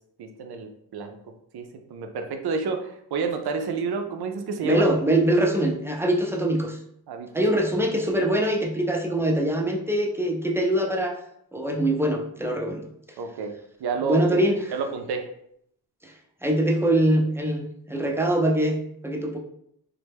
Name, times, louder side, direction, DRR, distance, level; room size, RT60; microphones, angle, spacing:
voice 1, 0.2-4.8 7.1-7.4 13.2-13.5 13.8-14.4 14.7-15.3, right 4 dB, 85° right, 5 dB, 0.5 m, -30 dB
voice 2, 4.6-6.8 7.3-11.2 11.5-12.9 14.0-14.6 16.0-16.1 16.4-18.8 19.0-19.4, right 1 dB, 5° right, 1 dB, 0.4 m, -23 dB
3.1 x 2.1 x 3.3 m, 0.72 s
wide cardioid pair, 120°, 38 cm